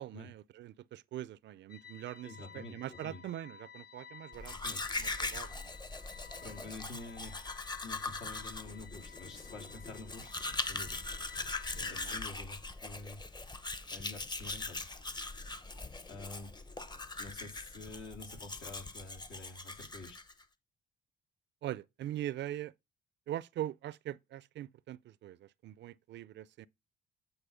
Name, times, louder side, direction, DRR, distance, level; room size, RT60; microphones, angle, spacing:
voice 1, 0.0-4.5 5.0-5.7 11.7-12.2 21.6-22.7 23.3-26.7, right 12 dB, 65° right, 0.4 m, -42 dB
sound 1, 1.7-11.9, left 7 dB, 55° left, 1.1 m, -54 dB
voice 2, 2.2-3.2 4.5-4.8 6.4-7.4 7.8-11.1 11.9-13.2 13.9-14.9 16.1-16.5 17.2-20.2, left 2 dB, 75° left, 3.4 m, -48 dB
Domestic sounds home sounds, 4.3-20.4, left 3 dB, 20° left, 0.8 m, -41 dB
9.0 x 4.1 x 5.0 m
cardioid pair, 90°, 20 cm